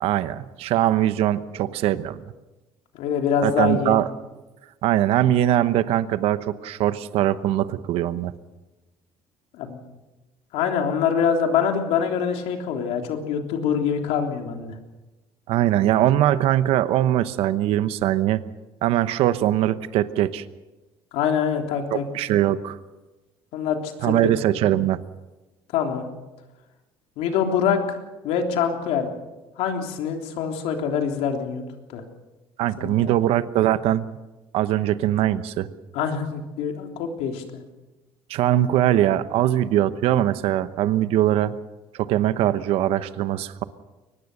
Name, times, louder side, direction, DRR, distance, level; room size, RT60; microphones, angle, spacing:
voice 1, 0.0-2.2 3.4-4.1 4.8-8.3 15.5-18.4 18.8-20.4 21.9-22.8 24.0-25.0 32.6-34.1 34.5-35.7 38.3-41.5 41.9-43.6, right 12 dB, 70° right, 13 dB, 1.0 m, -21 dB
voice 2, 2.9-4.0 9.5-9.8 10.5-14.8 21.1-22.0 23.5-24.3 25.7-26.1 27.2-29.1 29.6-31.6 31.9-32.0 32.8-33.2 35.9-37.6, left 7 dB, 85° left, 3 dB, 3.4 m, -25 dB
23.5 x 20.0 x 6.8 m, 1.1 s
cardioid pair, 150°, 10 cm